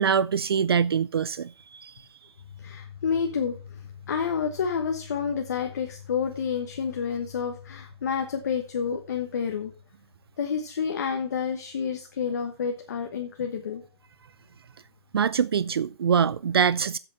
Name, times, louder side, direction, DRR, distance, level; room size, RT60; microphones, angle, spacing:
voice 1, 0.0-1.9 15.1-17.0, right 7 dB, 65° right, 0.4 m, -24 dB
voice 2, 2.6-9.7 10.4-13.8, left 6 dB, 40° left, 1.2 m, -29 dB
7.9 x 6.6 x 7.0 m
hypercardioid pair, 175°, 13 cm